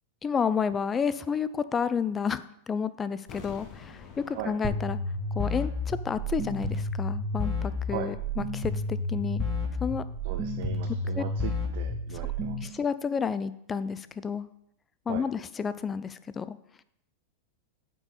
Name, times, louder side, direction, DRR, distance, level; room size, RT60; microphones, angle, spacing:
voice 1, 0.2-5.0 5.3-9.4 9.8-10.0 11.2-11.3 12.6-14.5 15.1-16.6, left 6 dB, 20° left, 15 dB, 0.5 m, -30 dB
sound 1, 3.3-6.2 6.4-6.5, left 5 dB, 40° left, 1.6 m, -48 dB
sound 2, 4.6-12.7, left 1 dB, 5° right, 1.9 m, -31 dB
voice 2, 10.2-12.8 15.1-15.3, right 11 dB, 55° right, 6 dB, 0.7 m, -38 dB
8.8 x 5.0 x 5.7 m, 0.75 s
figure-of-eight pair, 95°, 0 cm